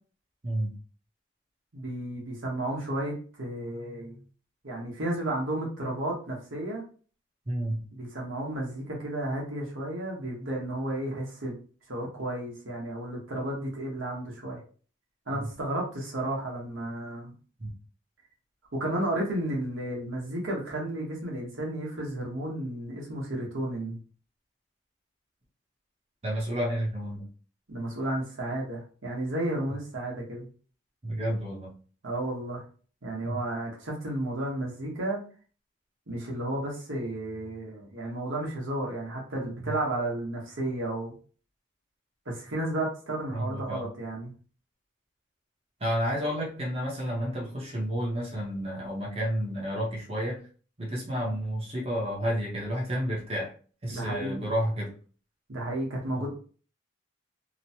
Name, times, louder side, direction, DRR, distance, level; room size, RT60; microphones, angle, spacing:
voice 1, 0.4-0.7 7.5-7.8 15.3-15.5 17.6-17.7 26.2-27.3 31.0-31.8 33.2-33.4 39.6-39.7 43.3-43.8 45.8-50.4 50.8-53.5 53.8-54.9 56.2-56.3, equal, 30° right, -2 dB, 0.7 m, -31 dB
voice 2, 1.7-4.2 4.6-6.8 7.9-11.6 11.9-14.6 15.3-17.3 18.7-24.0 27.7-30.5 32.0-32.6 33.0-35.2 36.1-41.2 42.3-44.3 53.9-54.5 55.5-56.3, right 1 dB, 80° right, -2 dB, 1.1 m, -32 dB
3.0 x 2.1 x 2.8 m, 0.39 s
head